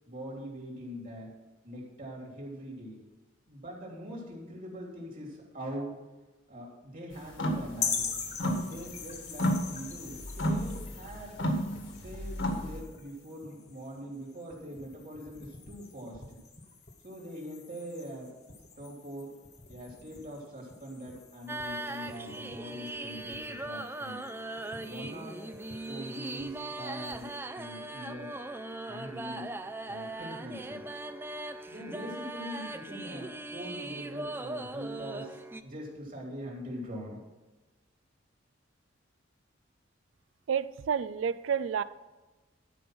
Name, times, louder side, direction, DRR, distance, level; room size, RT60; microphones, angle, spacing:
voice 1, 0.0-1.3 1.6-3.0 3.5-5.9 6.5-8.1 8.5-11.4 12.0-16.2 17.0-18.3 18.8-19.3 19.7-24.3 24.9-25.4 25.8-28.3 28.9-29.5 29.9-30.9 31.7-35.4 35.6-37.2, equal, 45° right, -2 dB, 3.1 m, -42 dB
sound 1, 7.3-7.7 8.0-9.0 9.3-12.8, equal, 70° left, 1.6 m, -31 dB
sound 2, 7.7-27.4, left 6 dB, 40° left, 1.3 m, -43 dB
sound 3, 21.5-35.6, right 2 dB, 10° right, 0.4 m, -39 dB
voice 2, 40.5-41.8, right 7 dB, 80° right, 16 dB, 0.4 m, -30 dB
12.5 x 5.2 x 6.0 m, 1.2 s
head